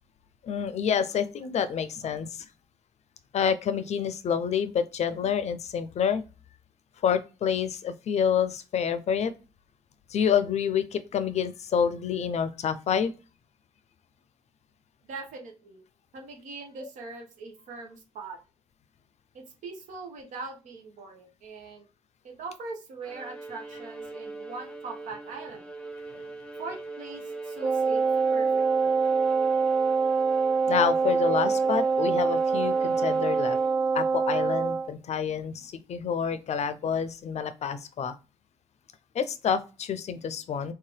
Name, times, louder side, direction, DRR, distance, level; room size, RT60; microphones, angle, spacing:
voice 1, 0.4-2.5 3.3-6.2 7.0-9.3 10.1-13.1 16.8-16.9 30.7-33.6 33.9-38.1 39.1-40.7, left 7 dB, 60° left, 12 dB, 0.5 m, -28 dB
voice 2, 15.1-15.8 16.1-18.4 19.3-21.8 22.2-25.6 26.6-28.0 28.3-28.9, right 3 dB, 80° right, 2 dB, 1.1 m, -41 dB
Bowed string instrument, 23.0-34.0, right 2 dB, 5° left, 0.7 m, -42 dB
Wind instrument woodwind instrument, 27.6-34.9, right 5 dB, 35° right, 0.4 m, -25 dB
3.3 x 2.8 x 3.2 m, 0.32 s
cardioid pair, 70°, 13 cm